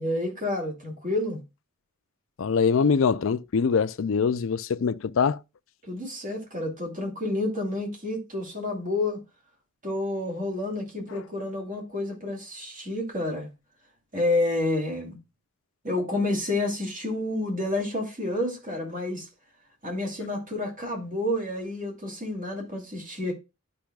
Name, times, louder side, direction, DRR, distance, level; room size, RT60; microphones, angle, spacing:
voice 1, 0.0-1.4 5.9-9.2 9.8-13.5 14.1-15.2 15.8-19.3 19.8-23.3, left 2 dB, 40° right, 2.6 m, -29 dB
voice 2, 2.4-5.4, left 5 dB, 65° left, 0.4 m, -23 dB
12.0 x 5.5 x 2.3 m
head